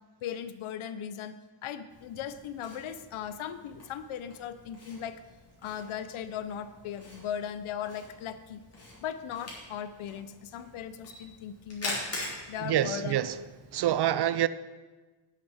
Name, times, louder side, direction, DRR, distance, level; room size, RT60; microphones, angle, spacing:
voice 1, 0.2-1.4 1.6-5.2 5.6-8.6 9.0-12.0 12.5-13.2, left 9 dB, 75° left, 0.8 m, -38 dB
Camera, 1.9-13.9, left 2 dB, 30° left, 3.4 m, -44 dB
voice 2, 12.6-13.4 13.7-14.5, right 11 dB, 55° right, 0.5 m, -26 dB
8.4 x 6.8 x 7.2 m
cardioid pair, 130°, 49 cm